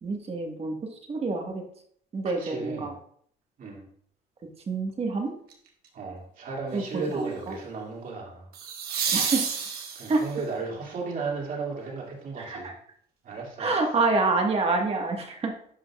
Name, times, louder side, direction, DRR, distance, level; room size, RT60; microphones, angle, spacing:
voice 1, 0.0-1.6 2.1-2.9 4.7-5.3 6.7-7.3 9.1-9.5 10.1-10.2 12.4-12.7 13.6-15.5, right 3 dB, 35° right, 2 dB, 1.6 m, -27 dB
voice 2, 2.4-2.9 3.6-3.8 5.9-8.5 9.1-9.4 9.9-12.7 13.2-13.7, right 4 dB, 55° right, -1 dB, 2.6 m, -35 dB
sound 1, 5.5-5.8 8.5-10.4 13.3-13.4, right 6 dB, 70° right, 1.5 m, -30 dB
11.0 x 5.2 x 2.5 m, 0.62 s
cardioid pair, 110°, 17 cm